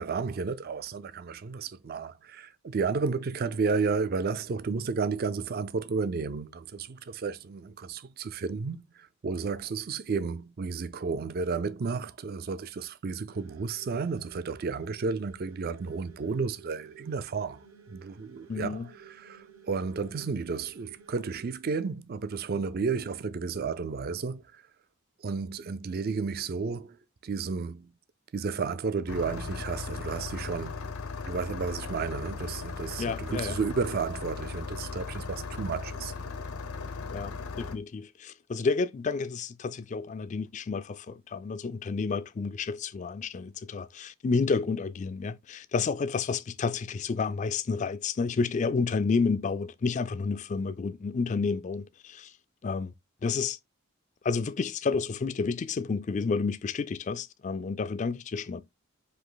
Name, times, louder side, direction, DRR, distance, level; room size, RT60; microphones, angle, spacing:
voice 1, 0.0-24.6 25.2-27.0 27.2-27.9 28.3-30.9 31.3-36.1, right 4 dB, 45° right, 0.4 m, -32 dB
sound 1, 13.3-21.5, right 7 dB, 65° right, 0.8 m, -53 dB
voice 2, 18.5-18.9 33.0-33.6 37.1-52.3 52.6-52.9 53.2-53.6 54.2-58.6, left 4 dB, 35° left, 0.3 m, -30 dB
Engine starting, 29.1-37.8, left 4 dB, 80° left, 0.7 m, -37 dB
5.1 x 2.5 x 3.9 m
head